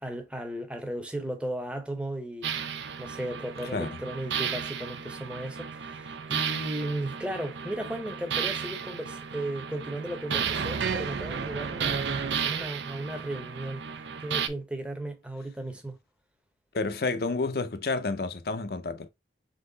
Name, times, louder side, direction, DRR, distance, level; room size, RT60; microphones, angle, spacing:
voice 1, 0.0-2.5 3.0-13.8 14.2-16.0, right 1 dB, 5° right, 0.7 m, -35 dB
sound 1, 2.4-14.5, right 7 dB, 85° right, 0.6 m, -33 dB
voice 2, 16.7-19.1, left 3 dB, 55° left, 0.5 m, -30 dB
3.9 x 3.1 x 3.9 m
head